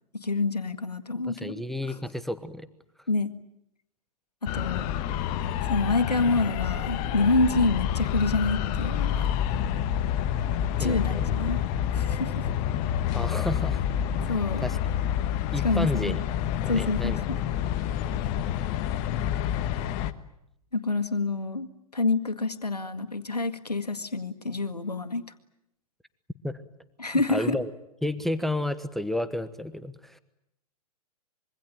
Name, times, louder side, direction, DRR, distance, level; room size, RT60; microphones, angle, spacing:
voice 1, 0.1-1.6 1.9-2.0 3.1-3.3 4.4-4.9 5.6-9.3 10.8-11.6 11.9-12.5 14.3-14.6 15.6-16.2 16.7-17.4 20.7-25.2 27.0-27.6, left 3 dB, 85° left, 10 dB, 1.9 m, -27 dB
voice 2, 1.3-2.7 10.8-11.3 13.1-13.8 14.2-14.3 14.6-14.8 15.5-16.2 16.6-17.2 26.4-26.6 27.1-27.7 28.0-30.2, left 1 dB, ahead, 13 dB, 1.0 m, -31 dB
sound 1, 4.5-20.1, left 10 dB, 35° left, 1.4 m, -28 dB
25.5 x 23.5 x 8.9 m, 0.78 s
figure-of-eight pair, 110°, 20 cm